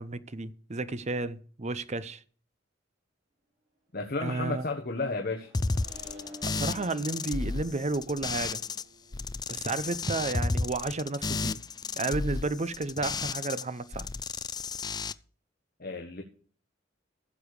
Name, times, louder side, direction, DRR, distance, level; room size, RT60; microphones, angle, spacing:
voice 1, 0.0-2.2 4.2-4.6 6.4-8.6 9.5-11.6 12.0-14.1, right 3 dB, 35° right, 0.7 m, -32 dB
voice 2, 3.9-5.5 15.8-16.2, left 3 dB, 50° left, 1.4 m, -32 dB
Accelerating revving vroom, 4.6-11.0, equal, 65° right, 4.2 m, -53 dB
sound 1, 5.5-8.8 9.1-13.6 13.9-15.1, left 3 dB, 20° left, 0.4 m, -32 dB
15.0 x 6.9 x 4.9 m
head